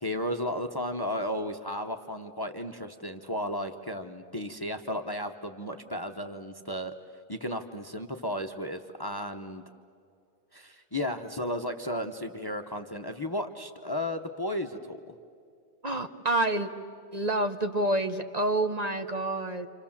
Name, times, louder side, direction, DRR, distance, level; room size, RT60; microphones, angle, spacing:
voice 1, 0.0-6.9 7.3-9.6 10.5-15.1, left 1 dB, 25° left, 7 dB, 0.8 m, -34 dB
voice 2, 15.8-16.7 17.1-19.7, right 1 dB, 40° right, 6 dB, 0.9 m, -28 dB
29.0 x 26.5 x 7.3 m, 2.5 s
omnidirectional pair, 1.2 m